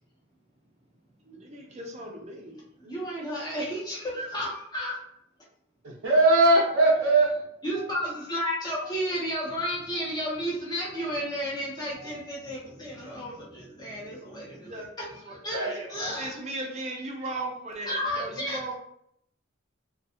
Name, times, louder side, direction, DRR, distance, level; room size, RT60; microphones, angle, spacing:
voice 1, 1.2-3.0 14.7-14.9 15.2-15.7 16.1-18.7, right 2 dB, 35° right, 0 dB, 0.5 m, -37 dB
voice 2, 2.8-5.0 7.6-14.8 15.3-16.4 17.9-18.7, equal, 20° left, -5 dB, 0.8 m, -32 dB
voice 3, 5.8-7.3 7.7-7.9 10.9-11.1 12.0-12.2 15.5-15.9, right 2 dB, 80° right, -5 dB, 0.6 m, -22 dB
2.5 x 2.3 x 2.7 m, 0.72 s
head